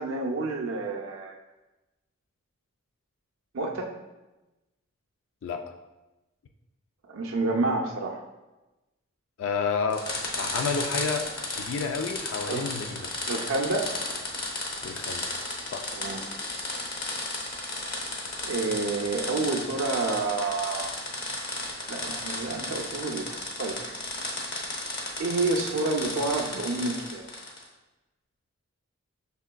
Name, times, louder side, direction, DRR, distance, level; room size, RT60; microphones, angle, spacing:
voice 1, 0.0-1.3 3.5-3.9 7.0-8.2 12.5-12.7 13.3-13.9 16.0-16.2 18.4-20.9 21.9-24.1 25.2-27.2, right 3 dB, 75° right, 1 dB, 0.4 m, -29 dB
voice 2, 5.4-5.7 9.4-10.1 10.4-13.1 14.8-15.3 15.7-15.9, left 5 dB, 65° left, 5 dB, 0.3 m, -30 dB
sound 1, 9.9-27.7, left 2 dB, 45° left, 0.8 m, -34 dB
6.3 x 3.5 x 2.2 m, 1.1 s
head